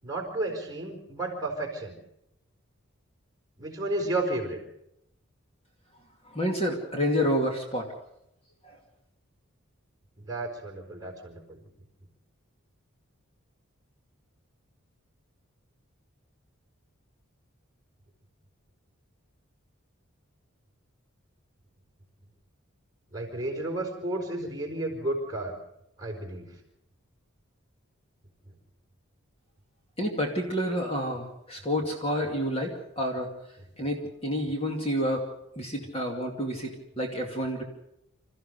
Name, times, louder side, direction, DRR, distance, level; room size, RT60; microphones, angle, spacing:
voice 1, 0.0-2.0 3.6-4.6 10.2-11.7 23.1-25.5 26.0-26.5, right 2 dB, 15° right, 1 dB, 4.8 m, -32 dB
voice 2, 6.3-7.9 8.6-8.8 30.0-33.3 33.8-35.2 35.6-37.6, equal, 25° left, 2 dB, 2.5 m, -29 dB
27.0 x 14.5 x 6.8 m, 0.80 s
head